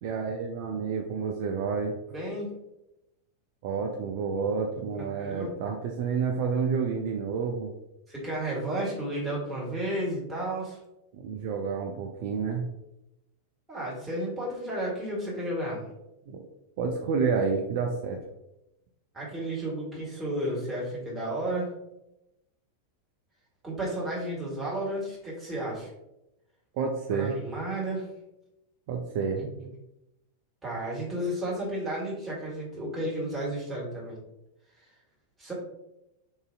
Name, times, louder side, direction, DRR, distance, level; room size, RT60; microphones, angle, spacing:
voice 1, 0.0-2.0 3.6-7.7 11.1-12.7 16.3-16.4 16.8-18.2 26.7-27.4 28.9-29.4, right 5 dB, 50° right, 2 dB, 0.3 m, -29 dB
voice 2, 2.1-2.5 4.8-5.5 8.1-10.8 13.7-15.9 19.1-21.7 23.6-25.9 27.1-28.1 29.3-29.5 30.6-34.2 35.4-35.5, right 1 dB, 10° right, -6 dB, 1.4 m, -32 dB
3.8 x 2.6 x 2.3 m, 0.89 s
figure-of-eight pair, 90°, 0 cm